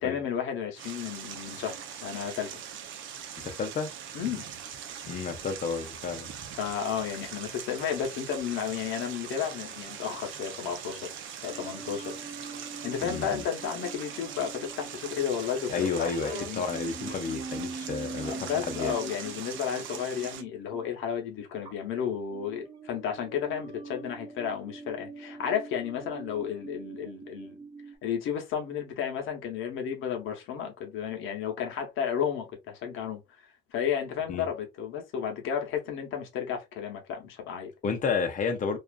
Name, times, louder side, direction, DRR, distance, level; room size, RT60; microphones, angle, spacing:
voice 1, 0.0-2.5 4.1-4.5 6.5-11.1 11.4-12.2 12.8-16.7 18.2-27.6 28.0-37.7, left 8 dB, 90° left, 0.8 m, -33 dB
sound 1, 0.7-20.4, right 8 dB, 80° right, 0.6 m, -41 dB
voice 2, 3.4-3.9 5.1-6.3 13.0-13.3 15.7-18.9 34.3-34.5 37.8-38.8, left 5 dB, 40° left, 0.6 m, -31 dB
sound 2, 11.5-20.9 21.6-22.0 22.3-28.0, right 3 dB, 20° right, 0.7 m, -43 dB
2.5 x 2.4 x 2.2 m
cardioid pair, 90°, 20 cm